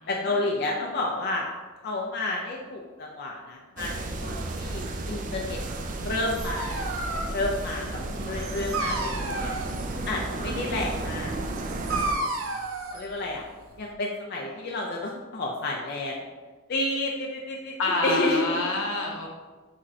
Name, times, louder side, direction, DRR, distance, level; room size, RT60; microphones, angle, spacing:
voice 1, 0.1-1.5 1.8-5.6 6.0-6.9 7.3-8.0 8.3-9.5 10.1-11.4 11.9-12.0 12.9-13.4 13.8-16.2 16.7-18.6, left 2 dB, 50° left, -1 dB, 0.5 m, -30 dB
sound 1, 3.8-12.1, right 2 dB, 40° right, 0.4 m, -33 dB
Dog, 6.2-13.9, right 2 dB, 80° right, 0.6 m, -33 dB
voice 2, 8.0-9.0 17.8-19.3, left 2 dB, 85° left, 0 dB, 0.9 m, -29 dB
6.2 x 3.1 x 2.7 m, 1.3 s
head